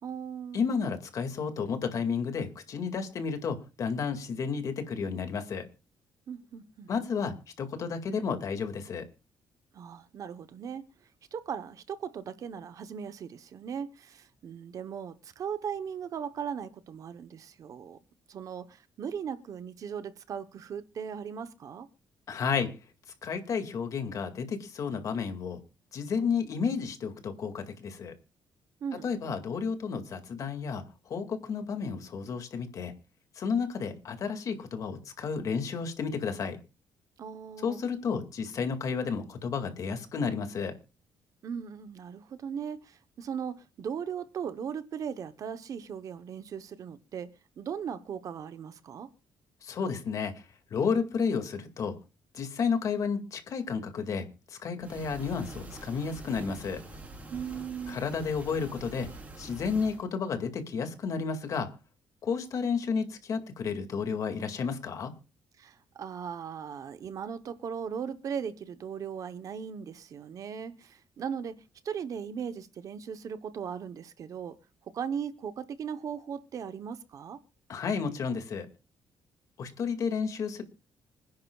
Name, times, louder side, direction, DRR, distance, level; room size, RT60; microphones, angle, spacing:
voice 1, 0.0-0.7 6.3-6.9 9.7-10.8 11.3-18.0 18.3-21.9 28.8-29.1 37.2-37.8 41.4-49.1 57.3-58.0 65.6-74.6 74.9-77.4, right 7 dB, 45° right, 0.9 m, -38 dB
voice 2, 0.5-5.7 6.9-9.1 22.3-22.7 23.2-25.6 25.9-28.1 29.0-30.8 31.1-32.9 33.4-36.6 37.6-40.7 49.6-50.4 50.7-52.0 52.3-56.8 57.9-59.1 59.4-61.7 62.2-65.1 77.7-78.7 79.6-80.6, left 5 dB, 45° left, 2.1 m, -32 dB
sound 1, 54.8-60.0, right 2 dB, 20° right, 3.8 m, -45 dB
26.0 x 10.5 x 2.3 m
cardioid pair, 175°, 8 cm